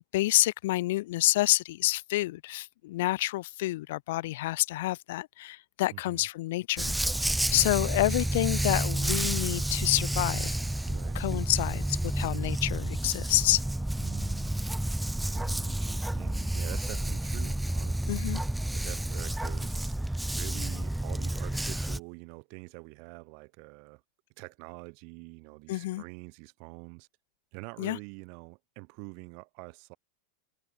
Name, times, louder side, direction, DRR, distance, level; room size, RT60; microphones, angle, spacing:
voice 1, 0.0-6.9 7.5-10.5 11.1-13.6 18.1-18.4 25.7-26.0 27.8-28.0, left 17 dB, 60° left, 0.5 m, -28 dB
voice 2, 5.9-6.3 10.8-11.2 14.0-24.0 24.4-27.1 27.5-30.0, right 38 dB, 45° right, 5.1 m, -46 dB
Dog, 6.8-22.0, right 1 dB, 5° right, 0.6 m, -30 dB
supercardioid pair, 170°, 0 cm